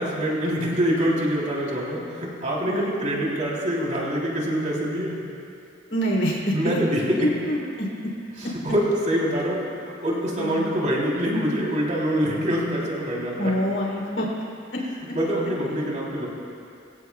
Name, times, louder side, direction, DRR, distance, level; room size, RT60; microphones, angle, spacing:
voice 1, 0.0-5.3 6.5-7.0 8.4-13.5 15.1-16.3, equal, 40° right, -4 dB, 3.4 m, -25 dB
voice 2, 5.9-6.8 7.4-8.1 8.4-8.5 10.4-10.6 13.4-14.3 14.7-14.8, equal, 65° left, -2 dB, 3.3 m, -26 dB
23.5 x 16.0 x 2.4 m, 2.5 s
head